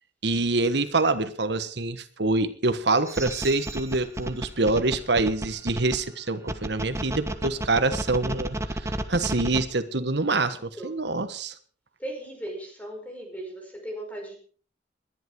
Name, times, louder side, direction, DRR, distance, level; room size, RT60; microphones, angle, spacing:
voice 1, 0.2-11.5, right 3 dB, 65° right, 11 dB, 1.4 m, -26 dB
sound 1, 3.1-6.0 6.5-9.6, right 1 dB, 15° right, 1.3 m, -31 dB
voice 2, 12.0-14.4, right 1 dB, 10° left, 2 dB, 5.1 m, -37 dB
21.0 x 11.0 x 4.8 m, 0.44 s
head